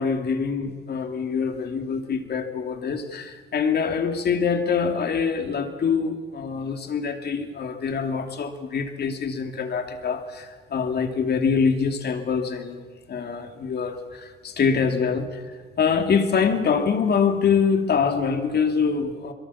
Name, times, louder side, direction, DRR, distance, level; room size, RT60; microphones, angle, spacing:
voice 1, 0.0-12.8 13.1-19.3, left 6 dB, 55° left, 5 dB, 2.7 m, -24 dB
23.5 x 23.0 x 7.2 m, 1.4 s
cardioid pair, 90°, 20 cm